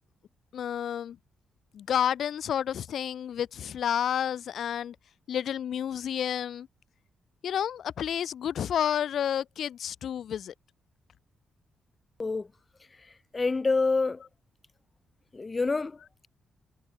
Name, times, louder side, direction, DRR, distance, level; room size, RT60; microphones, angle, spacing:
voice 1, 0.5-1.2 1.7-5.0 5.3-6.7 7.4-10.5, left 9 dB, 65° left, 2.8 m, -30 dB
voice 2, 13.3-14.2 15.3-16.0, left 3 dB, 35° left, 1.5 m, -26 dB
hypercardioid pair, 40°, 0 cm